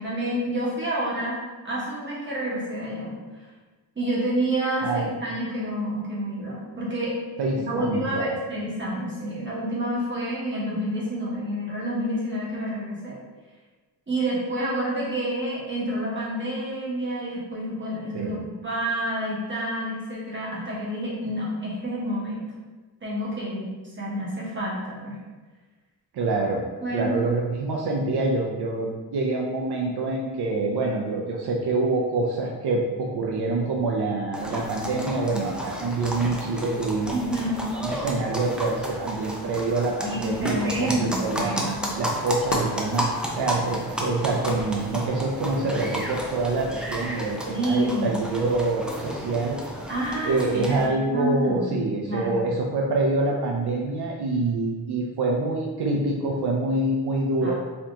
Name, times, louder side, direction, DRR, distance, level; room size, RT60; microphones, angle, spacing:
voice 1, 0.0-1.4 1.6-3.1 4.0-7.1 7.5-13.1 14.1-22.5 23.0-25.2 26.8-27.2 37.1-37.7 40.0-41.9 47.5-48.1 49.9-50.8 51.0-51.7 52.1-52.5 57.4-57.5, right 1 dB, 30° right, -6 dB, 1.4 m, -28 dB
voice 2, 7.4-8.4 18.1-18.4 26.1-26.6 26.9-37.4 37.7-41.6 41.9-49.6 50.2-57.5, right 2 dB, 70° right, -1 dB, 0.6 m, -26 dB
sound 1, 34.3-50.9, equal, ahead, 0.4 m, -32 dB
Fireworks, 42.5-45.8 46.4-46.5, left 3 dB, 65° left, 0.7 m, -37 dB
4.3 x 2.8 x 3.6 m, 1.3 s
wide cardioid pair, 140°, 40 cm